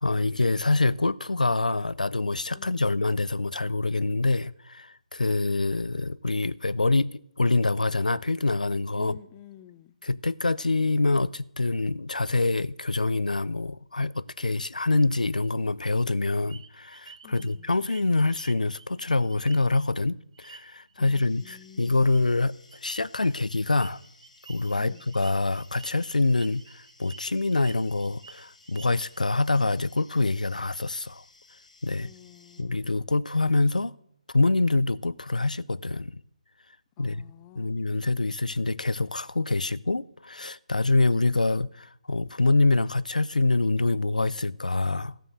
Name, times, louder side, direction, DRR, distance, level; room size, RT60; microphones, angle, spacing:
voice 1, 0.0-9.2 10.0-22.6 22.8-24.0 24.5-31.2 31.8-32.1 32.6-33.9 34.3-36.2 37.0-37.3 37.6-45.1, left 3 dB, 90° left, 0.4 m, -25 dB
voice 2, 2.5-2.9 8.9-9.9 17.2-17.7 21.0-22.0 24.7-25.1 32.0-32.9 37.0-37.8, left 12 dB, 25° left, 0.6 m, -50 dB
sound 1, 16.5-20.0 20.3-20.9 21.4-21.6 21.9-22.2 22.7-29.2, right 6 dB, 50° right, 1.1 m, -51 dB
sound 2, 21.1-32.6, left 3 dB, 70° left, 1.7 m, -57 dB
13.0 x 7.0 x 7.9 m
figure-of-eight pair, 145°, 4 cm